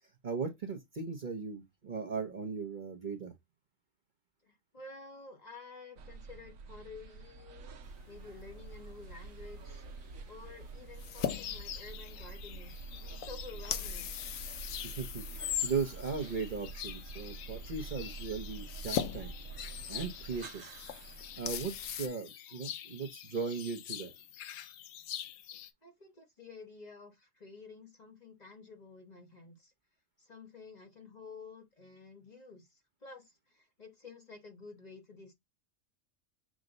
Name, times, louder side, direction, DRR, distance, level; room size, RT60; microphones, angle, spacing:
voice 1, 0.2-3.3 14.8-19.3 19.9-20.6 21.4-24.1, right 5 dB, 45° right, 0.8 m, -38 dB
voice 2, 4.4-7.8 8.1-14.1 25.8-29.7 30.2-35.3, left 4 dB, 35° left, 0.9 m, -51 dB
sound 1, 6.0-21.9, right 4 dB, 85° right, 1.2 m, -47 dB
sound 2, 7.8-22.1, left 9 dB, 85° left, 1.1 m, -43 dB
sound 3, 11.3-25.7, left 10 dB, 65° left, 0.8 m, -44 dB
6.1 x 2.1 x 3.7 m
omnidirectional pair, 1.3 m